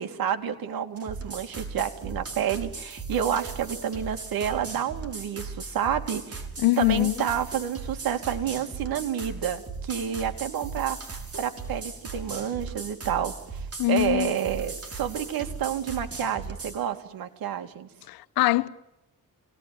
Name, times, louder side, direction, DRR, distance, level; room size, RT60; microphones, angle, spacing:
voice 1, 0.0-6.5 6.8-17.9, right 9 dB, 75° right, 2.5 m, -29 dB
sound 1, 1.0-16.8, right 4 dB, 40° right, 6.4 m, -38 dB
voice 2, 6.6-7.1 13.8-14.3 18.1-18.7, left 18 dB, 90° left, 1.0 m, -23 dB
28.0 x 19.0 x 9.4 m
cardioid pair, 75°, 35 cm